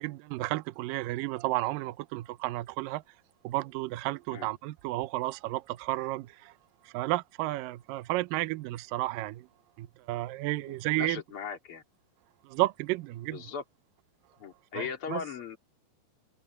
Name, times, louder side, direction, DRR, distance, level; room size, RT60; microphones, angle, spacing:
voice 1, 0.0-3.0 3.4-6.5 6.8-9.5 9.8-11.2 12.4-13.4 14.7-15.2, right 18 dB, 85° right, 1.9 m, -32 dB
voice 2, 10.7-11.8 13.3-13.6 14.4-15.6, left 7 dB, 35° left, 3.2 m, -38 dB
omnidirectional pair, 5.0 m